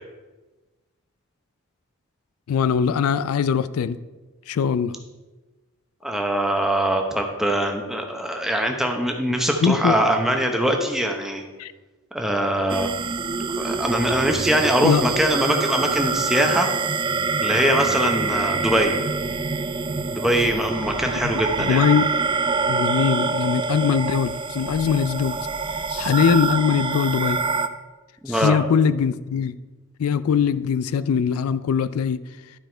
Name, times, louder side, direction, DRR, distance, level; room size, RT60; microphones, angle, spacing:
voice 1, 2.5-4.0 4.5-4.9 9.6-10.0 11.6-11.7 14.8-15.0 21.2-21.3 21.6-22.1 22.7-25.4 25.9-27.4 28.3-29.6 30.0-32.2, left 7 dB, 85° left, 15 dB, 0.3 m, -21 dB
voice 2, 6.0-11.4 12.1-12.9 13.6-16.7 17.4-18.9 20.1-21.8 28.2-28.6, right 1 dB, ahead, 3 dB, 0.8 m, -22 dB
sound 1, 12.7-27.7, right 4 dB, 20° right, 0.3 m, -25 dB
11.5 x 4.8 x 4.4 m, 1.2 s
head